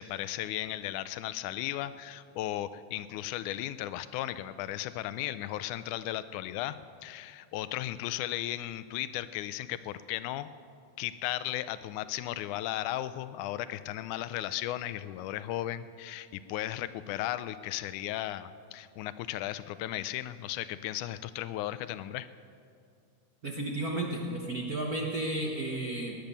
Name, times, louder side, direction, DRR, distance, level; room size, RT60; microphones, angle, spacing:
voice 1, 0.0-10.5 11.0-22.3, left 13 dB, 80° left, 14 dB, 2.0 m, -35 dB
voice 2, 23.4-26.2, right 1 dB, 70° right, -1 dB, 0.8 m, -33 dB
19.0 x 10.5 x 6.8 m, 2.4 s
omnidirectional pair, 3.7 m